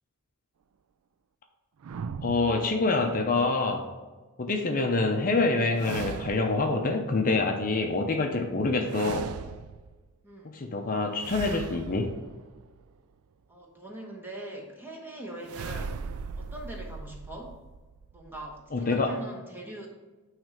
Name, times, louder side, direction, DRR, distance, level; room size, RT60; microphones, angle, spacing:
sound 1, 1.8-3.3 5.8-6.8 8.8-10.1 11.2-13.0 15.5-19.0, right 5 dB, 75° right, 0.4 m, -39 dB
voice 1, 2.2-3.9 4.4-9.3 10.4-12.1 18.7-19.1, left 3 dB, 40° left, 4 dB, 0.6 m, -26 dB
voice 2, 13.5-16.0 16.4-17.6 18.1-19.9, right 1 dB, 10° right, -1 dB, 1.1 m, -41 dB
9.2 x 3.3 x 5.0 m, 1.3 s
head